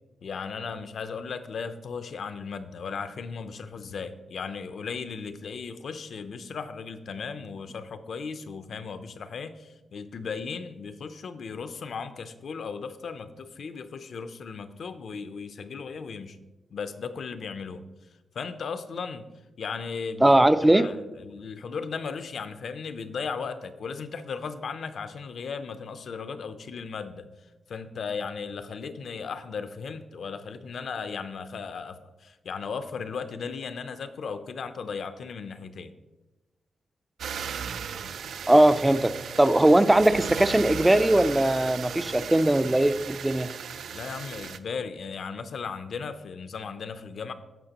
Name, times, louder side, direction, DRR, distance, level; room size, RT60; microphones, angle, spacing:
voice 1, 0.2-16.4 16.7-17.8 18.3-19.3 19.6-27.3 27.7-35.9 43.9-47.3, left 5 dB, 60° left, 10 dB, 0.5 m, -36 dB
voice 2, 20.2-20.8 38.5-43.5, right 1 dB, 10° right, 12 dB, 0.3 m, -20 dB
sound 1, 37.2-44.6, right 7 dB, 85° right, 0.4 m, -36 dB
16.5 x 5.7 x 2.9 m, 1.1 s
wide cardioid pair, 175°, 0 cm